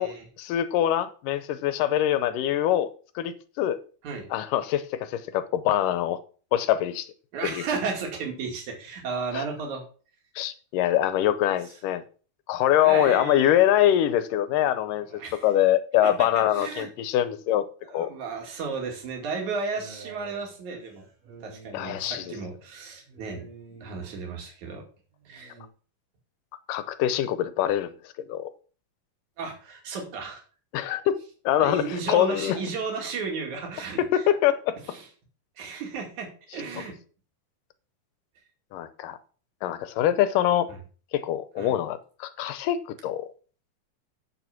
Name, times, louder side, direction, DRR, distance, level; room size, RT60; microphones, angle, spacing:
voice 1, 0.0-2.9 3.2-3.8 4.3-6.2 6.5-7.1 7.4-7.6 9.3-9.4 10.4-12.0 12.5-15.1 15.4-17.7 17.9-18.1 21.7-22.3 26.7-27.9 28.3-28.5 30.7-31.2 31.5-32.6 34.0-34.8 38.7-39.2 39.6-40.7 41.1-43.3, left 11 dB, 90° left, 2.4 m, -24 dB
voice 2, 7.3-9.8 12.8-13.5 15.1-15.5 16.0-16.9 17.8-21.1 21.4-23.5 23.8-24.8 25.3-25.6 29.4-30.4 31.6-34.2 34.8-35.1 35.6-37.0 40.7-40.8 41.6-41.8, right 4 dB, 65° right, 3.7 m, -34 dB
sound 1, 19.5-24.4 25.1-25.7, right 5 dB, 90° right, 4.5 m, -49 dB
8.7 x 7.0 x 6.0 m
omnidirectional pair, 3.7 m